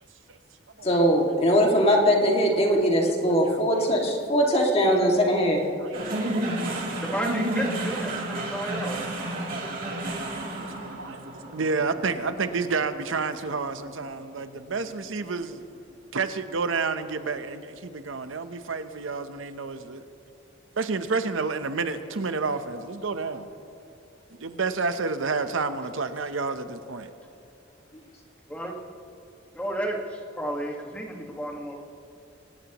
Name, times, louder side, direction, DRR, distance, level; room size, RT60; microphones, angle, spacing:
voice 1, 0.8-5.6, equal, 30° left, -1 dB, 2.2 m, -21 dB
voice 2, 3.5-4.2 5.8-7.3 7.9-8.0 8.3-8.4 8.9-9.0 9.3-10.3 10.6-11.2 11.5-15.6 16.1-20.0 20.8-23.5 24.4-27.1, right 4 dB, 85° right, 9 dB, 0.9 m, -30 dB
sound 1, 5.9-14.4, right 1 dB, 45° right, 2.9 m, -31 dB
voice 3, 7.0-9.0 28.5-28.7 29.5-31.8, right 1 dB, 5° left, 1 dB, 1.7 m, -32 dB
24.0 x 18.0 x 3.0 m, 2.6 s
head